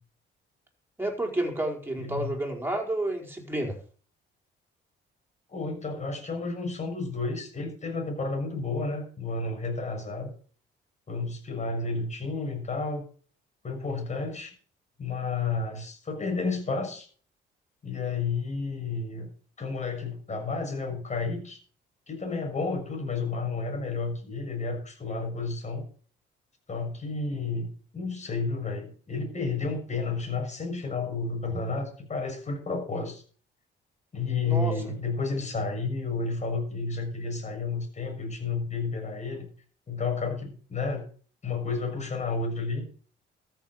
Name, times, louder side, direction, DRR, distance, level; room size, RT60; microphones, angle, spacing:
voice 1, 1.0-3.8 34.4-34.7, right 1 dB, 10° right, 2 dB, 4.8 m, -30 dB
voice 2, 2.0-2.3 5.5-10.3 11.1-13.1 13.6-14.5 15.0-17.1 17.8-19.3 19.6-21.6 22.1-25.9 26.7-33.2 34.1-39.5 39.9-41.1 41.4-42.8, left 4 dB, 35° left, 3 dB, 6.5 m, -31 dB
13.5 x 7.2 x 7.7 m, 0.43 s
cardioid pair, 90°, 20 cm